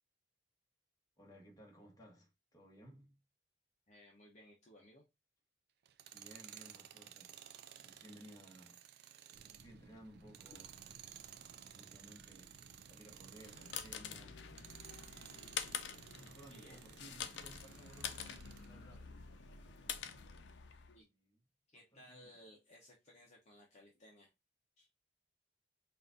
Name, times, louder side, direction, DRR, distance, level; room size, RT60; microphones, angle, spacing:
voice 1, 1.2-3.2 6.1-7.4 7.7-8.8 9.6-10.7 11.7-14.4 16.1-19.4 20.9-21.4 21.7-22.4, right 1 dB, 20° left, 1.3 m, -59 dB
voice 2, 3.9-5.0 7.8-7.9 16.5-16.8 20.9-21.1 21.7-24.3 24.8-24.9, left 1 dB, 40° left, 0.8 m, -60 dB
Tools, 5.9-14.1 14.5-18.7, right 11 dB, 60° right, 0.3 m, -56 dB
sound 1, 9.3-20.3, right 2 dB, 90° right, 0.7 m, -63 dB
sound 2, 13.2-21.0, left 8 dB, 70° left, 0.5 m, -47 dB
5.6 x 2.5 x 2.6 m
head